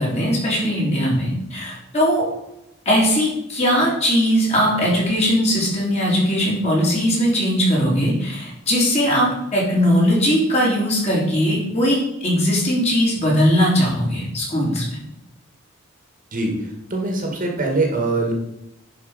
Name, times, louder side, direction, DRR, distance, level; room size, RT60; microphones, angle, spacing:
voice 1, 0.0-2.2 2.9-15.0, equal, 30° left, -4 dB, 3.5 m, -19 dB
voice 2, 16.3-18.3, right 2 dB, 40° right, 2 dB, 1.9 m, -23 dB
10.0 x 5.4 x 5.2 m, 0.86 s
head